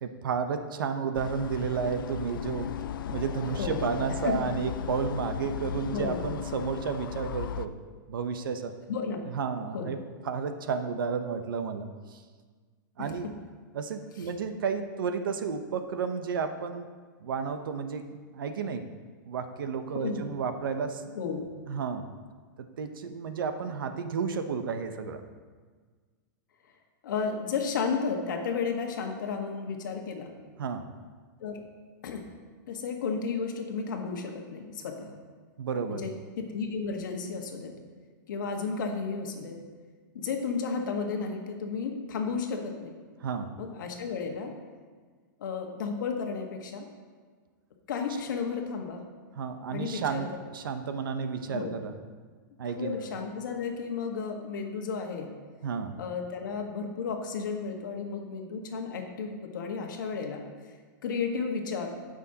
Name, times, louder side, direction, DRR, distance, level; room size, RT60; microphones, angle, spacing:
voice 1, 0.0-2.8 3.1-7.7 8.1-8.7 9.3-10.0 10.2-12.2 13.0-13.3 13.7-16.9 17.2-18.9 19.3-21.0 21.7-22.1 22.8-25.2 30.6-30.9 35.6-36.1 43.2-43.5 49.3-51.9 52.6-53.0 55.6-56.0, right 6 dB, 85° right, 8 dB, 0.9 m, -32 dB
sound 1, 1.1-7.7, left 9 dB, 85° left, 0.4 m, -36 dB
voice 2, 3.6-3.9 4.2-4.3 5.9-6.3 8.9-9.2 9.7-10.0 13.0-13.1 14.2-14.3 19.9-20.2 21.1-21.4 27.0-30.3 31.4-31.6 32.0-32.2 32.7-35.2 35.9-37.7 38.3-39.6 40.1-42.9 43.5-44.5 45.4-46.9 47.9-49.0 49.7-50.2 51.5-51.7 52.7-55.3 56.0-60.4 61.0-61.9, left 5 dB, 65° left, 3 dB, 1.5 m, -33 dB
16.5 x 6.2 x 2.9 m, 1.5 s
supercardioid pair, 175°, 11 cm